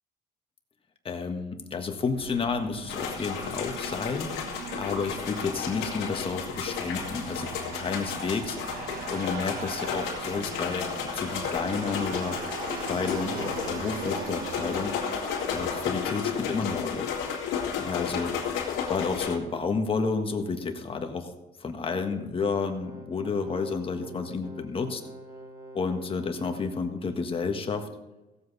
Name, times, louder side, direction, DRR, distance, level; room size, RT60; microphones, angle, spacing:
voice 1, 1.0-4.3 4.8-8.6 9.1-12.4 12.8-14.9 15.5-17.0 17.8-18.3 18.9-21.3 21.6-25.0 25.7-27.9, left 4 dB, 30° left, 5 dB, 1.6 m, -31 dB
Aircraft, 2.1-19.6, right 7 dB, 55° right, 1.0 m, -41 dB
sound 1, 2.9-19.4, left 7 dB, 90° left, 2.4 m, -33 dB
sound 2, 22.7-26.6, right 2 dB, 20° right, 1.4 m, -46 dB
16.5 x 7.8 x 4.2 m, 1.0 s
cardioid pair, 110°, 17 cm